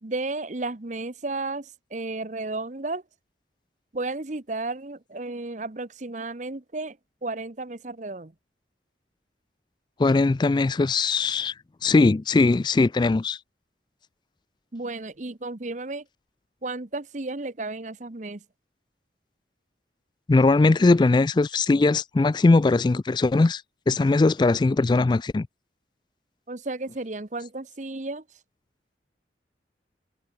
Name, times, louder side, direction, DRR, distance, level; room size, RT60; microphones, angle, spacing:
voice 1, 0.0-3.0 3.9-8.3 14.7-16.0 16.6-18.4 26.5-28.2, right 2 dB, 40° right, 1.0 m, -33 dB
voice 2, 10.0-11.5 11.8-13.4 20.3-25.5, left 3 dB, 25° left, 0.3 m, -20 dB
head